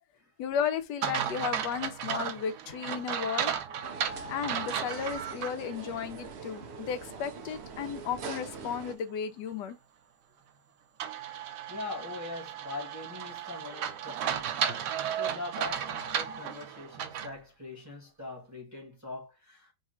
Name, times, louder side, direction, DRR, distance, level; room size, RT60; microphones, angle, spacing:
voice 1, 0.4-3.5 4.3-9.8, left 7 dB, 85° left, 1.3 m, -34 dB
sound 1, 1.0-5.5 6.0-6.1 11.0-17.4, right 9 dB, 85° right, 1.3 m, -34 dB
sound 2, 3.8-9.0, right 5 dB, 60° right, 0.7 m, -43 dB
voice 2, 11.7-19.7, left 3 dB, 10° right, 1.1 m, -42 dB
4.0 x 2.3 x 4.2 m
omnidirectional pair, 1.8 m